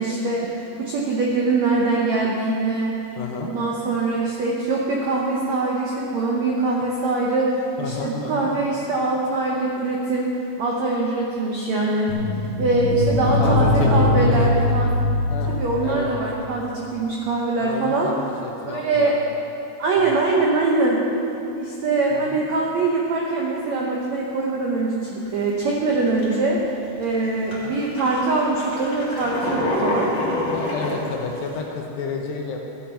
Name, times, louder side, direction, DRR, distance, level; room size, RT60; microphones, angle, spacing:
voice 1, 0.0-3.0 3.4-10.3 10.6-12.1 12.6-15.0 15.4-18.1 18.6-19.1 19.8-21.0 21.5-26.6 27.0-30.1, right 3 dB, 85° right, -2 dB, 1.5 m, -23 dB
voice 2, 3.2-3.5 7.8-8.5 13.3-14.3 15.3-15.5 15.8-16.2 17.6-19.2 20.0-20.1 22.1-22.4 27.7-27.8 30.5-32.6, left 5 dB, 75° left, 1 dB, 2.5 m, -31 dB
sound 1, 12.1-16.5 16.8-16.9, left 2 dB, 65° right, 3.1 m, -21 dB
sound 2, 25.3-25.5 25.9-26.4 27.0-27.2 27.5-31.6, left 1 dB, 30° left, 2.0 m, -27 dB
14.5 x 9.3 x 4.4 m, 2.9 s
omnidirectional pair, 4.5 m